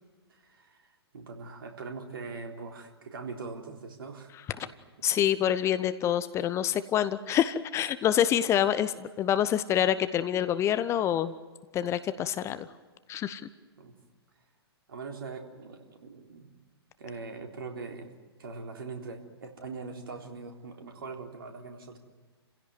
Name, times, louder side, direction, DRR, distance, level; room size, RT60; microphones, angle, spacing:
voice 1, 0.3-0.9 1.1-4.3 4.6-4.7 13.8-13.9 14.9-16.5 17.0-18.1 18.4-22.0, right 4 dB, 60° right, 4 dB, 3.8 m, -41 dB
voice 2, 5.0-11.3 11.7-12.7 13.1-13.4, left 10 dB, 20° left, 14 dB, 0.9 m, -26 dB
29.5 x 16.5 x 9.6 m, 1.3 s
figure-of-eight pair, 115°, 14 cm